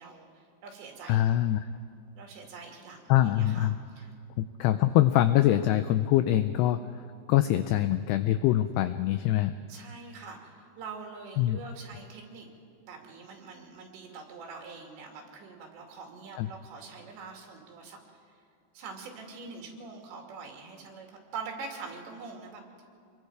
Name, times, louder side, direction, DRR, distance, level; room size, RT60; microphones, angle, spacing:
voice 1, 0.0-1.3 2.2-4.1 4.4-4.5 9.7-12.5 12.8-18.0 18.7-22.6, right 4 dB, 70° right, 1 dB, 4.7 m, -44 dB
voice 2, 1.1-1.7 3.1-3.8 4.6-6.8 7.3-9.6 11.4-11.6 16.4-16.5, left 13 dB, 90° left, 10 dB, 2.3 m, -24 dB
26.0 x 22.0 x 4.8 m, 2.4 s
omnidirectional pair, 5.4 m